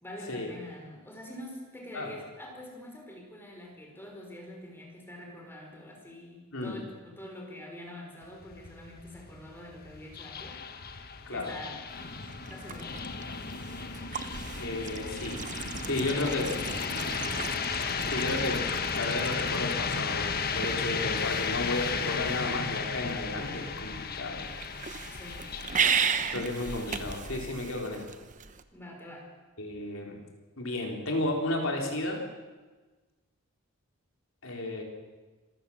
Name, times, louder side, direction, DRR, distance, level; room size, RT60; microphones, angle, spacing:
voice 1, 0.0-10.6 11.3-12.0 12.5-13.0 25.1-25.7 28.7-29.3, left 1 dB, 10° left, 0 dB, 5.0 m, -45 dB
sound 1, 8.2-27.2, left 5 dB, 45° left, 1.3 m, -34 dB
voice 2, 11.3-11.6 14.6-15.4 15.8-16.5 18.1-18.6 19.0-24.5 26.3-28.1 29.6-30.2 30.6-32.2 34.4-34.8, left 2 dB, 65° left, 1 dB, 4.3 m, -33 dB
sound 2, 11.9-28.6, right 6 dB, 35° right, 1.0 m, -36 dB
26.0 x 15.0 x 7.4 m, 1.3 s
head